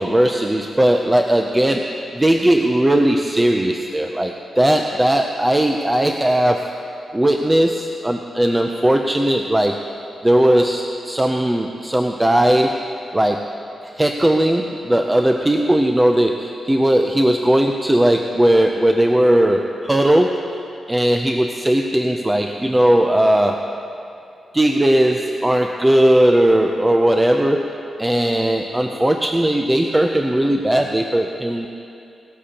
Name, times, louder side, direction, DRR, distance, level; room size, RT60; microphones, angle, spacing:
voice 1, 0.0-6.9 7.1-9.8 10.2-12.8 13.1-13.5 13.8-23.8 24.5-31.7, right 1 dB, 10° right, 3 dB, 0.4 m, -18 dB
18.0 x 13.5 x 2.9 m, 2.6 s
wide cardioid pair, 155°, 0 cm